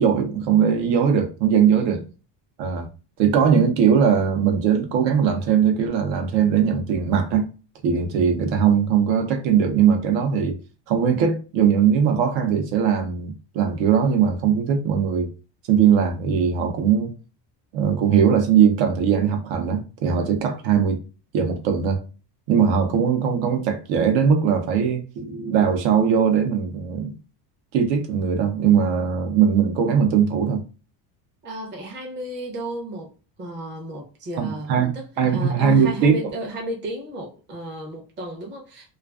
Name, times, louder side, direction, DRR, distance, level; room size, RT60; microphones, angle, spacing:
voice 1, 0.0-2.0 2.6-2.9 3.2-7.5 7.8-10.5 10.9-15.3 15.7-17.1 17.7-21.0 21.3-22.0 22.5-27.1 27.7-30.6 34.4-34.9 35.2-36.1, right 7 dB, 75° right, 0.8 m, -20 dB
voice 2, 1.7-2.1 31.4-38.9, right 1 dB, 25° right, 0.6 m, -34 dB
2.4 x 2.3 x 2.3 m
cardioid pair, 165°, 45 cm